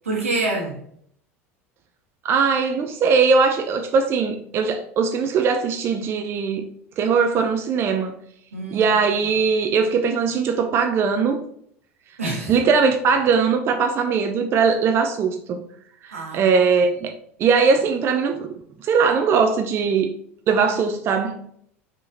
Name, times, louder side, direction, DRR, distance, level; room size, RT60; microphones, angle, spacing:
voice 1, 0.0-0.8 8.5-9.0 12.2-12.5 16.1-16.5, right 2 dB, 75° right, 0 dB, 1.2 m, -26 dB
voice 2, 2.2-6.7 7.0-8.1 8.7-11.5 12.5-15.6 16.0-17.1 17.4-20.1 20.5-21.5, right 5 dB, 35° right, 5 dB, 0.4 m, -20 dB
5.4 x 3.0 x 2.6 m, 0.67 s
figure-of-eight pair, 75°, 8 cm